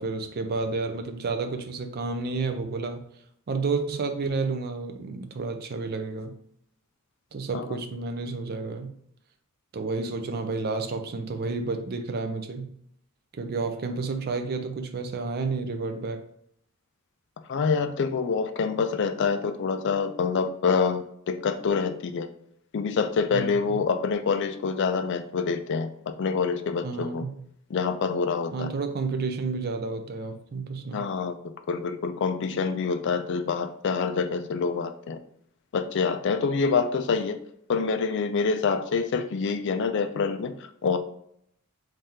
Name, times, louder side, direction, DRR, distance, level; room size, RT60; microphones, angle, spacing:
voice 1, 0.0-3.0 3.5-6.3 7.3-9.0 9.7-12.7 13.3-16.2 23.3-23.8 26.8-27.4 28.5-31.0, right 4 dB, 45° right, 7 dB, 0.4 m, -31 dB
voice 2, 17.5-22.3 22.7-27.2 27.7-28.7 30.9-31.4 31.7-35.2 35.7-37.4 37.7-40.5 40.8-41.0, left 5 dB, 55° left, 9 dB, 0.3 m, -26 dB
3.5 x 3.2 x 2.8 m, 0.71 s
head